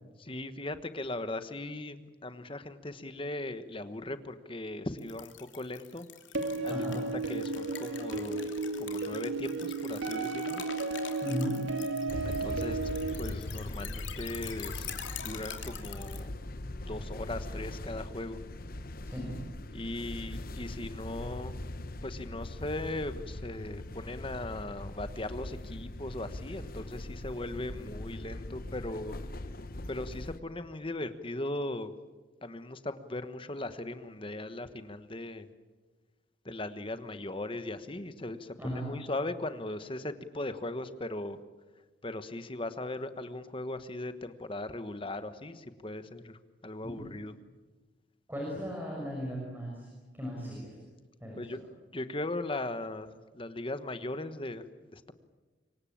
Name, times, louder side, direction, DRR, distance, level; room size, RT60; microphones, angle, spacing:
voice 1, 0.2-6.1 6.6-7.0 7.3-8.4 8.8-10.6 12.2-12.8 13.2-14.9 15.2-16.3 16.9-18.4 19.7-21.5 22.0-29.1 29.9-31.9 32.4-35.5 36.4-41.4 42.0-47.3 51.4-51.6 51.9-55.1, left 2 dB, 30° left, 11 dB, 1.3 m, -38 dB
sound 1, 5.0-16.2, left 8 dB, 80° left, 3.0 m, -45 dB
sound 2, 6.3-13.1, right 3 dB, 75° right, 3.0 m, -34 dB
voice 2, 6.7-7.0 11.2-11.6 19.0-19.4 38.6-38.9 46.8-47.1 48.3-49.9 50.1-50.8 51.2-51.4, equal, 10° right, -2 dB, 6.2 m, -36 dB
sound 3, 12.1-30.4, left 1 dB, 50° left, 1.1 m, -41 dB
26.0 x 23.5 x 8.7 m, 1.3 s
head